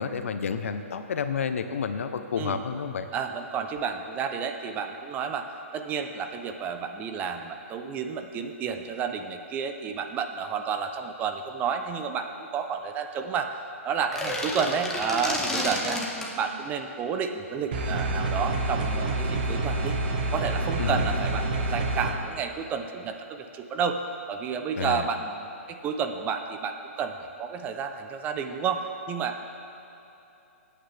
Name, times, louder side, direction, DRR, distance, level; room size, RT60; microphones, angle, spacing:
voice 1, 0.0-3.1 20.8-21.2 24.8-25.1, left 6 dB, 70° left, 9 dB, 0.8 m, -30 dB
voice 2, 3.1-5.5 5.7-13.5 13.8-16.0 16.4-20.0 20.3-24.0 24.3-29.4, right 6 dB, 20° right, 6 dB, 0.7 m, -31 dB
sound 1, 14.0-16.3, left 2 dB, 5° left, 1.3 m, -30 dB
sound 2, 17.7-22.1, right 2 dB, 50° right, 1.7 m, -27 dB
22.0 x 8.9 x 3.5 m, 2.9 s
hypercardioid pair, 140°, 8 cm